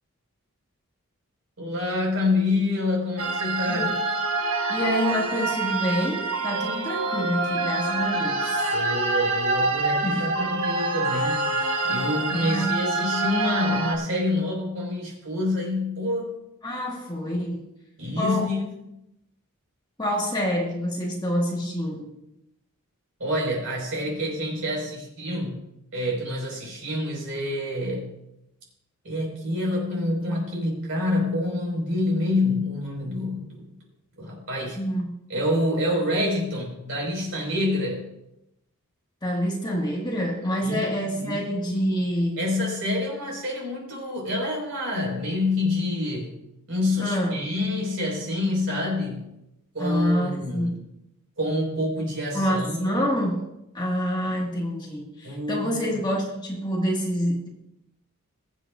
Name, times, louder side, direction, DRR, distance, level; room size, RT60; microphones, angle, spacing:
voice 1, 1.6-3.9 8.7-11.5 11.8-16.4 18.0-18.7 23.2-25.6 25.9-28.1 29.0-33.8 34.2-34.8 35.3-38.1 40.6-41.4 42.4-49.3 49.7-50.8 51.4-52.9 55.2-56.0, left 1 dB, 60° right, -2 dB, 5.0 m, -27 dB
sound 1, 3.2-14.0, right 2 dB, 80° right, 1.3 m, -26 dB
voice 2, 4.7-8.7 10.0-10.3 12.3-12.9 16.6-17.6 18.2-18.5 20.0-22.1 34.8-35.2 39.2-42.4 47.0-47.5 49.8-50.7 52.3-57.5, equal, 20° left, -2 dB, 1.8 m, -27 dB
22.0 x 7.9 x 2.5 m, 0.87 s
head